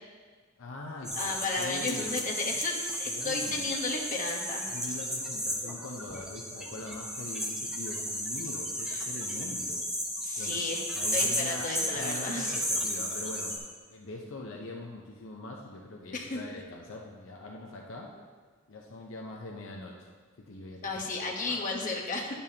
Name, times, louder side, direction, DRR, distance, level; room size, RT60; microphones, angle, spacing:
voice 1, 0.6-2.1 3.0-3.7 4.7-9.9 10.4-10.6 10.9-13.5 13.9-18.1 18.7-20.1 20.4-20.9 21.2-21.6, left 2 dB, 65° left, 0 dB, 0.7 m, -42 dB
sound 1, 1.0-13.6, equal, 5° right, 0.8 m, -34 dB
voice 2, 1.1-2.7 3.0-4.7 8.9-9.1 10.2-10.8 11.1-12.6 16.1-16.4 20.8-22.3, left 3 dB, 40° left, -1 dB, 1.1 m, -33 dB
10.5 x 7.0 x 2.8 m, 1.5 s
head